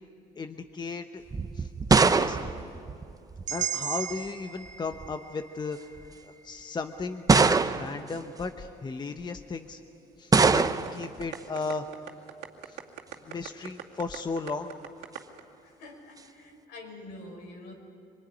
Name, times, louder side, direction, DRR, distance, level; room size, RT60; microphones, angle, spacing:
voice 1, 0.4-1.2 1.5-2.5 3.5-5.8 6.4-9.8 10.2-11.9 12.7-12.8 13.2-14.7, left 4 dB, 25° left, 7 dB, 1.0 m, -35 dB
sound 1, 1.3-3.6 4.7-5.1 6.0-6.1 7.3-8.1 10.3-11.1, right 4 dB, 20° right, 0.8 m, -23 dB
sound 2, 3.5-7.5, right 10 dB, 45° right, 1.0 m, -37 dB
sound 3, 10.6-15.4, right 12 dB, 85° right, 2.4 m, -41 dB
voice 2, 15.6-17.7, left 2 dB, 85° left, 1 dB, 5.9 m, -46 dB
25.5 x 21.5 x 9.7 m, 2.9 s
cardioid pair, 110°, 17 cm